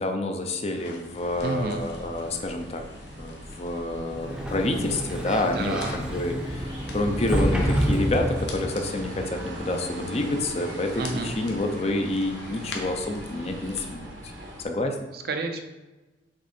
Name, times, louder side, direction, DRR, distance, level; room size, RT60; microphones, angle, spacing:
voice 1, 0.0-2.8 3.2-6.7 6.9-14.1 14.6-15.0, left 2 dB, 35° left, 5 dB, 0.5 m, -28 dB
sound 1, 0.7-13.9, left 3 dB, 75° left, 1.0 m, -45 dB
sound 2, 1.2-14.6, right 1 dB, 90° right, 1.4 m, -40 dB
voice 2, 1.4-1.8 5.4-6.0 11.0-11.4 15.1-15.6, right 3 dB, 55° right, 6 dB, 0.5 m, -30 dB
Sliding door, 4.1-8.9, equal, 5° right, 0.6 m, -28 dB
6.0 x 3.8 x 4.2 m, 1.2 s
head